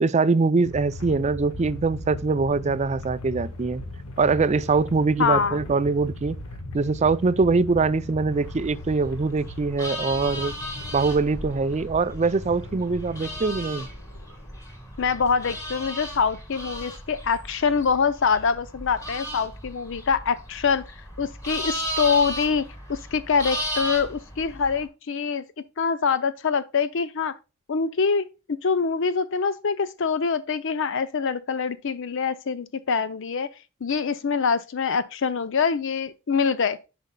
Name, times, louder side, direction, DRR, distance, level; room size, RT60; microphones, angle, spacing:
voice 1, 0.0-3.8 4.2-6.4 6.7-10.5 10.9-13.9, right 4 dB, 30° right, 0.4 m, -23 dB
sound 1, 0.6-14.6, left 2 dB, 90° left, 1.4 m, -39 dB
voice 2, 5.2-5.6 15.0-20.8 21.2-25.4 25.8-27.3 27.7-28.3 28.6-33.5 33.8-36.8, left 5 dB, 60° left, 0.5 m, -24 dB
sound 2, 8.3-24.9, equal, 15° left, 2.0 m, -36 dB
10.5 x 5.2 x 2.2 m
head